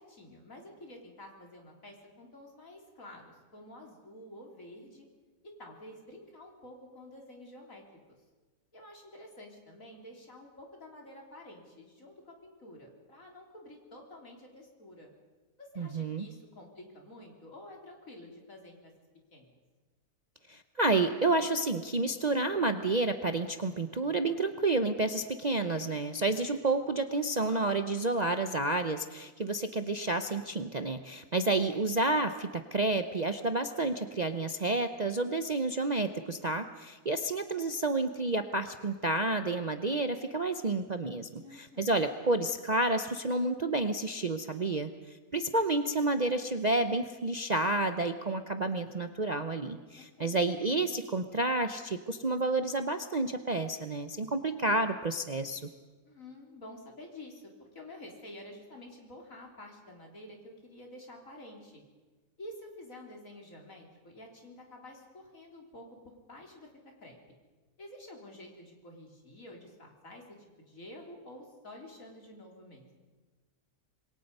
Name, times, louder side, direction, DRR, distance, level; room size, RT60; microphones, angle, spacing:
voice 1, 0.0-5.1 5.4-7.8 8.7-15.1 15.6-18.9 19.3-19.6 41.4-41.9 50.0-50.4 56.0-61.8 62.4-66.7 67.0-67.4 67.8-70.2 70.6-72.9, left 1 dB, 60° left, 1 dB, 4.1 m, -50 dB
voice 2, 15.8-16.3 20.5-55.7, right 2 dB, 35° right, 7 dB, 0.7 m, -30 dB
26.5 x 22.0 x 5.5 m, 1.3 s
omnidirectional pair, 1.6 m